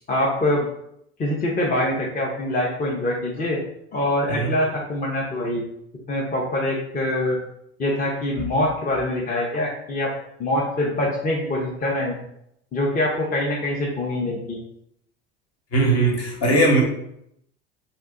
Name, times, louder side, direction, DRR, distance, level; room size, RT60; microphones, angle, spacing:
voice 1, 0.1-0.7 1.2-3.6 3.9-5.6 6.1-7.4 7.8-10.1 10.4-12.2 12.7-14.6, left 1 dB, 25° left, -3 dB, 0.7 m, -24 dB
voice 2, 15.7-16.8, right 2 dB, 45° left, -1 dB, 1.3 m, -19 dB
2.7 x 2.2 x 3.7 m, 0.75 s
hypercardioid pair, 80°, 34 cm